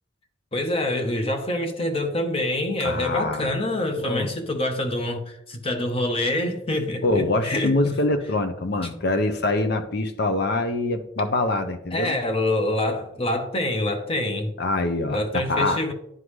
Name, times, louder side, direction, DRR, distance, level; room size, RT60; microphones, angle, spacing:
voice 1, 0.5-8.0 11.9-14.5 15.1-15.9, left 1 dB, 30° left, 0.8 m, -26 dB
voice 2, 2.8-3.5 4.0-4.3 7.0-12.1 14.6-15.8, left 2 dB, 55° left, 0.6 m, -24 dB
11.0 x 3.8 x 3.1 m
head